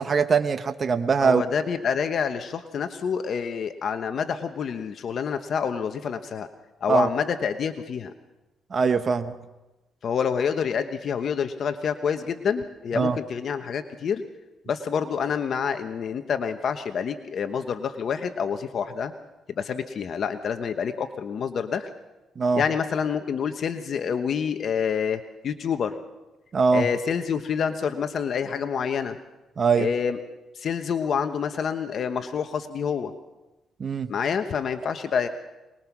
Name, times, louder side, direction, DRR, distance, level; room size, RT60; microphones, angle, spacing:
voice 1, 0.0-1.5 6.9-7.1 8.7-9.3 12.9-13.2 22.4-22.6 26.5-26.9 29.6-29.9 33.8-34.1, right 5 dB, 40° right, 8 dB, 1.1 m, -22 dB
voice 2, 1.2-6.5 6.8-8.1 10.0-14.2 14.7-19.1 19.6-21.9 22.5-25.9 26.7-29.2 29.8-30.2 30.5-33.1 34.1-35.3, left 7 dB, 55° left, 8 dB, 1.1 m, -27 dB
23.5 x 21.0 x 6.1 m, 1.1 s
cardioid pair, 90°, 0 cm